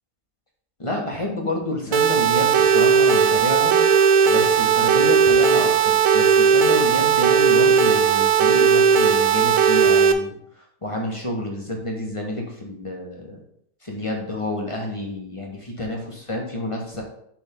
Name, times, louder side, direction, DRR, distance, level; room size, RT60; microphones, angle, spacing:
voice 1, 0.8-3.8 4.3-13.4 13.8-17.0, left 1 dB, 25° left, 0 dB, 1.1 m, -29 dB
sound 1, 1.9-10.1, right 6 dB, 70° right, 0.9 m, -17 dB
10.5 x 3.5 x 3.6 m, 0.69 s
omnidirectional pair, 1.6 m